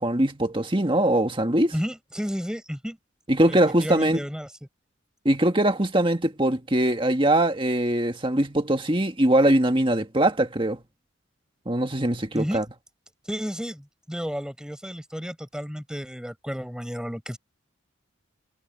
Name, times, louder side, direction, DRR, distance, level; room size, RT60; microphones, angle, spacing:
voice 1, 0.0-1.7 3.3-4.2 5.2-10.8 11.6-12.6, right 1 dB, 25° right, 1.8 m, -22 dB
voice 2, 1.7-3.0 3.5-4.5 12.3-12.6 13.3-17.4, equal, 5° right, 4.5 m, -32 dB
head